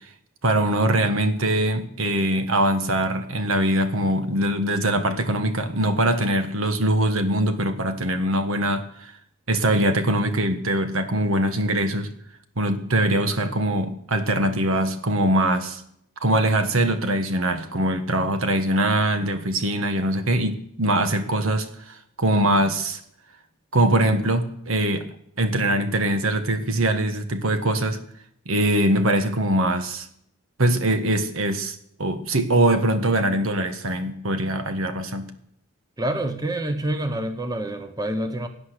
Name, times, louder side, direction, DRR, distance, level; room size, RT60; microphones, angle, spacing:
voice 1, 0.4-9.1 9.5-12.1 12.6-15.8 16.2-23.0 23.7-25.1 25.4-28.0 28.4-30.1 30.6-35.3, right 1 dB, 75° right, 8 dB, 1.4 m, -22 dB
voice 2, 36.0-38.5, right 1 dB, 15° right, 7 dB, 1.0 m, -27 dB
17.5 x 9.8 x 6.6 m, 0.71 s
head